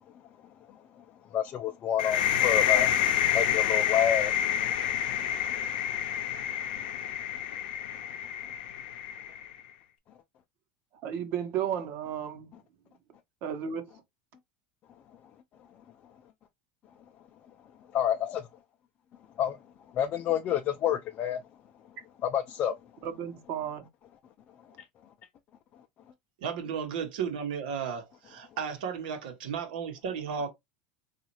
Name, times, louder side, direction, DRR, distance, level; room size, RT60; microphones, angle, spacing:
voice 1, 1.3-2.9 3.3-4.3 17.9-18.5 19.4-19.6 19.9-21.4 22.2-22.8, left 9 dB, 40° left, 0.4 m, -28 dB
sound 1, 2.0-9.5, left 10 dB, 90° left, 0.6 m, -28 dB
voice 2, 11.0-12.5 13.4-13.8 23.0-23.8, right 9 dB, 55° right, 0.9 m, -33 dB
voice 3, 26.4-30.5, right 6 dB, 85° right, 1.0 m, -34 dB
4.0 x 2.4 x 2.9 m
supercardioid pair, 130°, 5 cm